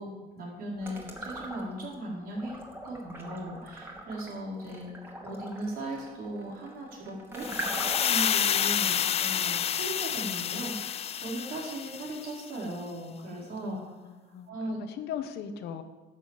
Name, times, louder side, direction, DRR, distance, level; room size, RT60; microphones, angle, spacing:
voice 1, 0.0-2.6 2.8-4.9 5.2-13.8 14.5-14.8 15.4-15.5, right 1 dB, 60° right, -3 dB, 4.7 m, -38 dB
sound 1, 0.8-1.9 2.3-8.3, right 1 dB, 15° right, 2.7 m, -41 dB
sound 2, 7.4-12.4, left 9 dB, 35° left, 0.4 m, -29 dB
voice 2, 13.6-15.8, left 8 dB, 80° left, 9 dB, 1.3 m, -39 dB
12.0 x 8.3 x 7.4 m, 1.3 s
cardioid pair, 110°, 17 cm